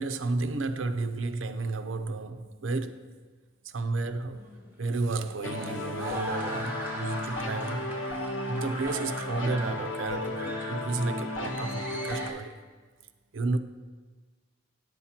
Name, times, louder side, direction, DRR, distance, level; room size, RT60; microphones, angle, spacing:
voice 1, 0.0-3.1 3.6-4.4 4.8-7.9 8.5-12.6 13.3-13.6, right 3 dB, 80° right, 0.6 m, -32 dB
sound 1, 4.3-12.3, right 1 dB, 10° right, 1.7 m, -41 dB
sound 2, 5.4-12.3, left 1 dB, 75° left, 1.0 m, -34 dB
10.0 x 7.4 x 4.3 m
head